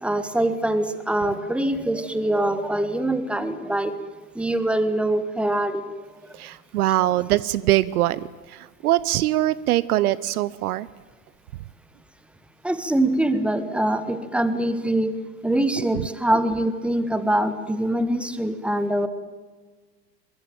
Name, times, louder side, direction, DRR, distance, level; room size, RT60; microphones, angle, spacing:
voice 1, 0.0-3.9 4.3-5.9 12.6-15.2 15.4-19.1, right 1 dB, ahead, 12 dB, 1.7 m, -23 dB
voice 2, 6.3-10.9 15.9-16.1, right 15 dB, 60° right, 20 dB, 0.9 m, -23 dB
23.5 x 22.0 x 8.9 m, 1.4 s
hypercardioid pair, 100°, 49 cm